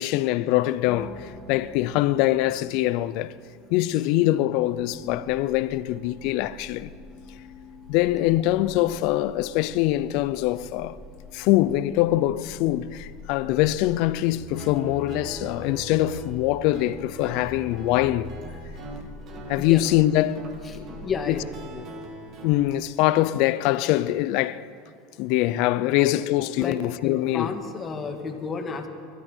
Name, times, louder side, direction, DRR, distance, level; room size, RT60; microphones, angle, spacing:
voice 1, 0.0-3.3 3.7-6.9 7.9-11.0 11.3-18.3 19.5-20.5 20.7-21.4 22.4-24.7 25.2-27.5, left 15 dB, 65° left, 0.5 m, -23 dB
sound 1, 0.9-13.2, left 3 dB, 5° right, 3.1 m, -49 dB
sound 2, 4.6-21.7, left 2 dB, 60° right, 2.6 m, -47 dB
Guitar, 14.3-22.6, right 2 dB, 40° right, 2.3 m, -41 dB
voice 2, 19.6-19.9 20.6-21.9 25.9-26.2 26.6-28.9, left 5 dB, 25° left, 1.8 m, -32 dB
24.0 x 12.5 x 4.5 m
supercardioid pair, 110°, 0 cm